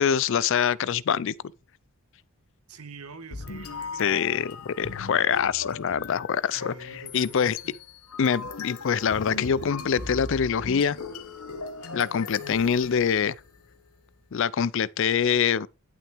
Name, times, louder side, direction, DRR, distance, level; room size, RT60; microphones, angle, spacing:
voice 1, 0.0-1.3 4.0-7.6 8.2-11.0 11.9-13.4 14.3-15.7, left 7 dB, 55° left, 0.4 m, -24 dB
voice 2, 2.7-4.4 6.6-7.8 12.4-13.0, right 4 dB, 80° right, 1.2 m, -46 dB
sound 1, 3.3-13.6, left 4 dB, 90° left, 1.4 m, -39 dB
11.5 x 6.0 x 3.4 m
head